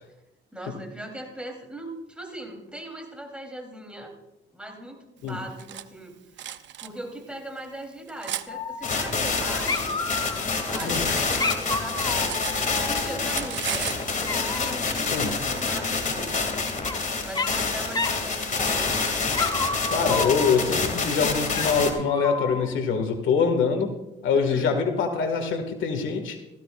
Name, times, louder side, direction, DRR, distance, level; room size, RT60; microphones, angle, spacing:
voice 1, 0.5-4.1 4.5-6.4 6.8-12.3 12.8-16.4 17.2-19.2 24.3-24.7, right 1 dB, 5° right, 2 dB, 3.3 m, -39 dB
Cutlery silverware, 5.3-5.9 6.4-6.9 7.6-8.5 9.4-11.1 11.4-12.9 13.2-14.0, right 11 dB, 65° right, 0.7 m, -35 dB
Dog, 8.5-9.4 9.7-10.9 11.4-13.5 14.3-14.9 16.3-17.0 17.3-17.7 17.9-18.2 18.6-19.0 19.3-20.8 21.5-22.8, left 3 dB, 20° left, 0.9 m, -31 dB
sound 1, 8.8-21.9, left 4 dB, 40° left, 2.5 m, -27 dB
voice 2, 19.9-23.9 24.2-26.4, left 5 dB, 75° left, 5 dB, 1.9 m, -24 dB
17.0 x 15.0 x 2.5 m, 0.95 s
cardioid pair, 90°, 20 cm